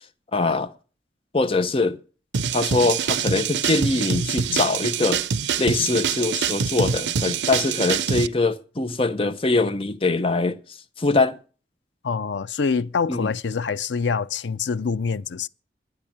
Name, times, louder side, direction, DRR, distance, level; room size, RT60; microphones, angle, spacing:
voice 1, 0.3-0.7 1.3-2.0 2.5-5.2 5.6-10.6 11.0-11.4 13.1-13.3, left 3 dB, 30° left, 0.8 m, -23 dB
sound 1, 2.3-8.3, right 6 dB, 85° right, 0.6 m, -25 dB
voice 2, 12.0-15.5, left 5 dB, 90° left, 0.5 m, -25 dB
10.5 x 9.6 x 8.6 m
head